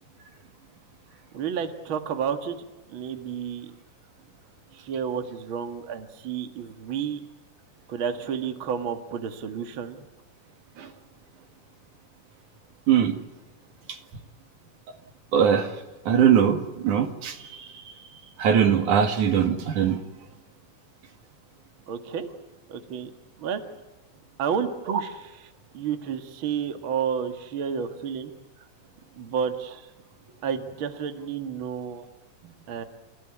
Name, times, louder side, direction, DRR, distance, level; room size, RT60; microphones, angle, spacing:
voice 1, 1.3-3.7 4.7-7.2 7.9-10.1 21.9-22.3 22.7-23.1 23.4-23.6 24.4-25.3 25.7-28.3 29.1-29.9 30.4-32.1 32.7-32.8, right 7 dB, 45° right, 7 dB, 2.3 m, -31 dB
voice 2, 12.9-13.2 15.3-15.7 16.1-16.6 16.8-17.9 18.4-20.0, right 8 dB, 80° right, 7 dB, 3.5 m, -21 dB
30.0 x 16.0 x 9.9 m, 1.1 s
omnidirectional pair, 3.5 m